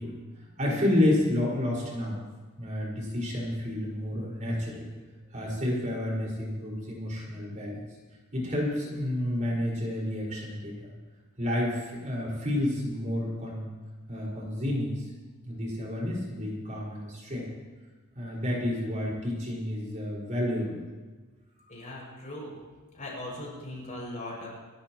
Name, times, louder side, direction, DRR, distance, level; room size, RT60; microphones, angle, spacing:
voice 1, 0.0-2.2 2.6-4.9 5.3-7.8 8.3-10.9 11.4-13.7 14.1-15.1 15.5-17.5 18.2-20.8, left 1 dB, 35° right, -4 dB, 5.2 m, -30 dB
voice 2, 21.7-22.5 22.9-24.5, left 1 dB, 35° left, -3 dB, 6.5 m, -39 dB
28.5 x 13.5 x 3.1 m, 1.3 s
head